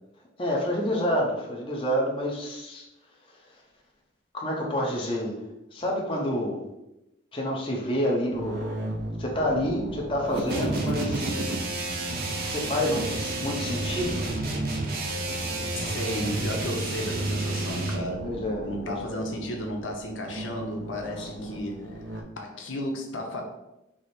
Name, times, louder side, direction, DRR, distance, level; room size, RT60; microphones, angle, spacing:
voice 1, 0.4-2.8 4.3-5.4 5.7-6.6 7.3-8.8 9.2-11.5 12.5-14.4 18.2-19.2 21.2-21.6, equal, 25° left, -2 dB, 0.7 m, -28 dB
sound 1, 8.3-22.2, right 1 dB, 85° right, 0.6 m, -37 dB
sound 2, 10.5-18.1, right 2 dB, 50° right, 0.6 m, -30 dB
voice 2, 15.8-18.4 18.6-23.4, left 1 dB, 90° left, 2 dB, 0.8 m, -34 dB
4.8 x 2.0 x 4.2 m, 0.91 s
head